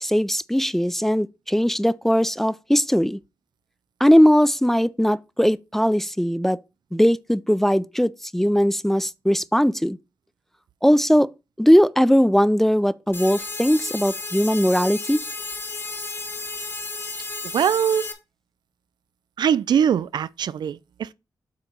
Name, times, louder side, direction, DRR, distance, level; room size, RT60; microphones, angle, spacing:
voice 1, 0.0-3.2 4.0-6.6 6.9-10.0 10.8-11.3 11.6-15.2, equal, 5° left, 0.3 m, -19 dB
sound 1, 13.1-18.1, left 3 dB, 35° left, 1.3 m, -33 dB
voice 2, 17.5-18.1 19.4-21.1, right 8 dB, 75° right, 0.4 m, -22 dB
7.6 x 3.0 x 5.8 m
cardioid pair, 85°, 8 cm